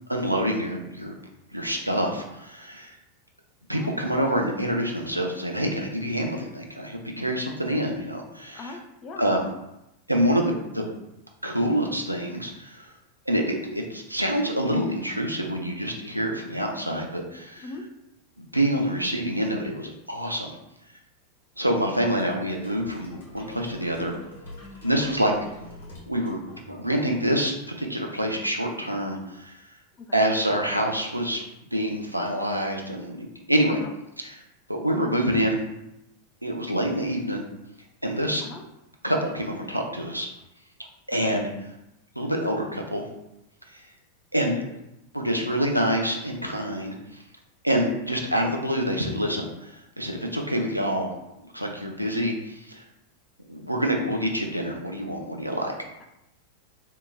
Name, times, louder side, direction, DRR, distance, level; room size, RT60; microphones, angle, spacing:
voice 1, 0.1-1.1 1.5-2.9 3.7-8.7 9.2-9.4 10.1-10.9 11.4-12.9 13.3-17.6 18.5-20.6 21.6-24.2 24.8-25.3 26.1-26.4 26.7-29.7 30.1-31.4 31.7-33.8 34.2-34.3 34.7-35.6 36.4-37.4 38.0-38.4 39.0-40.3 41.1-41.5 42.2-43.0 43.7-43.9 44.3-44.7 45.1-47.2 47.6-51.1 51.4-52.9 53.5-55.7, equal, 90° right, 1 dB, 0.4 m, -26 dB
voice 2, 8.5-9.3 17.6-17.8 30.0-30.3 33.7-33.9 38.4-38.6 41.2-41.4 47.8-48.0, left 3 dB, 30° left, 4 dB, 0.4 m, -40 dB
sound 1, 22.2-27.0, left 2 dB, 60° left, 1.2 m, -45 dB
3.5 x 2.8 x 2.3 m, 0.88 s
figure-of-eight pair, 90°, 0 cm